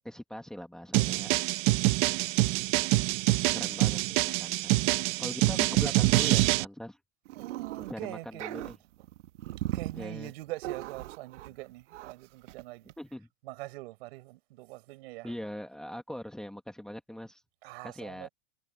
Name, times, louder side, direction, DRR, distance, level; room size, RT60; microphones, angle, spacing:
voice 1, 0.0-1.3 2.7-2.9 3.5-4.8 5.2-7.0 7.9-8.8 10.0-10.3 13.0-13.3 15.2-17.4 17.8-18.3, left 1 dB, ahead, 1.7 m, -41 dB
sound 1, 0.9-6.6, right 20 dB, 40° right, 1.2 m, -25 dB
voice 2, 0.9-1.3 1.6-2.0 7.3-8.6 9.6-12.9 13.4-15.3 17.6-18.3, right 20 dB, 60° right, 4.6 m, -44 dB
sound 2, 7.2-7.9 8.2-11.6 11.9-12.1 12.5-12.6 12.9-13.0, right 15 dB, 85° right, 1.5 m, -38 dB
supercardioid pair, 165°, 35 cm